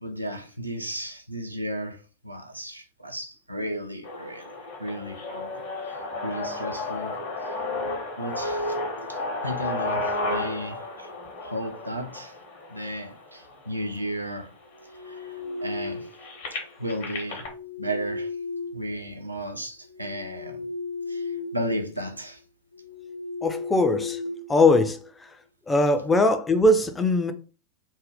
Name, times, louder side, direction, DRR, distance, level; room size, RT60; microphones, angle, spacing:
voice 1, 0.0-5.6 5.9-7.5 8.2-8.8 9.1-11.1 11.4-12.4 12.7-14.5 14.9-16.1 16.5-17.5 17.8-18.4 18.7-20.7 21.1-22.4, equal, 85° right, 0.4 m, -34 dB
sound 1, 4.0-14.0 14.7-14.8 15.0-17.5, left 2 dB, 55° left, 0.9 m, -33 dB
sound 2, 14.7-16.2 17.2-19.4 19.8-21.7 22.0-22.2 22.7-25.1, left 3 dB, 80° left, 0.4 m, -35 dB
voice 2, 23.4-24.2 24.5-25.3 25.7-27.3, left 2 dB, 10° left, 0.4 m, -21 dB
2.6 x 2.1 x 3.4 m
figure-of-eight pair, 90°, 0 cm